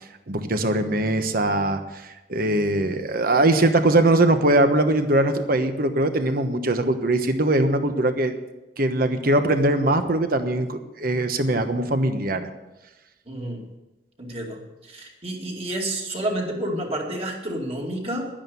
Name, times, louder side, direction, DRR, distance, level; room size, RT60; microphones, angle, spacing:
voice 1, 0.3-8.3 8.8-12.5, right 1 dB, 50° right, 8 dB, 1.1 m, -21 dB
voice 2, 13.3-13.6 14.2-14.6 14.9-18.3, right 1 dB, 35° right, 0 dB, 2.3 m, -29 dB
11.0 x 10.0 x 7.0 m, 1.0 s
head